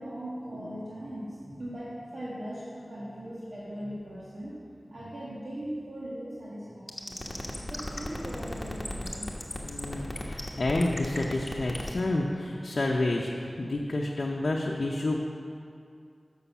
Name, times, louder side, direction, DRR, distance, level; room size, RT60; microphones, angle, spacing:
voice 1, 0.0-4.6 4.9-7.2 7.7-9.3, equal, 70° right, -8 dB, 1.6 m, -39 dB
sound 1, 6.9-12.0, left 1 dB, 25° left, 1.2 m, -35 dB
voice 2, 9.6-15.3, left 2 dB, 65° left, -1 dB, 0.6 m, -29 dB
7.0 x 6.4 x 7.1 m, 2.4 s
wide cardioid pair, 60°, 0 cm